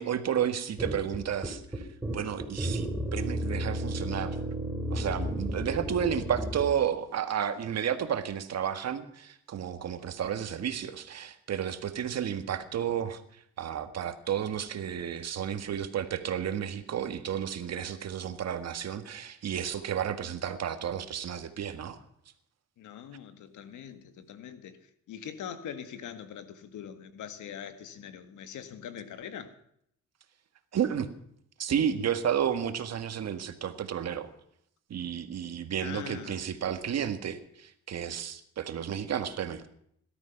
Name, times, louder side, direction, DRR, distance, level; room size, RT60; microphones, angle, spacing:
voice 1, 0.0-4.4 4.9-13.2 13.6-22.0 30.7-31.1 31.6-34.3 34.9-39.7, right 9 dB, 60° right, 1.7 m, -32 dB
sound 1, 0.8-6.7, equal, 10° right, 3.6 m, -33 dB
voice 2, 22.8-24.8 25.1-29.5 35.8-36.4, left 8 dB, 80° left, 1.7 m, -42 dB
17.5 x 12.5 x 5.9 m
cardioid pair, 90°, 30 cm